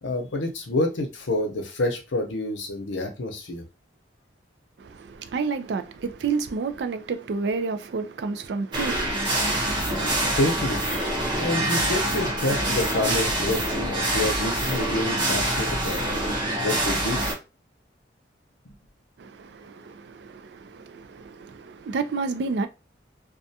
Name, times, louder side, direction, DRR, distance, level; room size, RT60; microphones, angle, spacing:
voice 1, 0.0-3.6 9.9-10.8 11.3-16.0 16.3-17.2 18.7-18.8, left 2 dB, 85° left, 0.7 m, -28 dB
voice 2, 4.8-10.1 19.2-22.7, right 4 dB, 65° right, 0.4 m, -30 dB
sound 1, 8.7-17.3, right 1 dB, 25° right, 0.8 m, -25 dB
2.3 x 2.3 x 2.7 m
head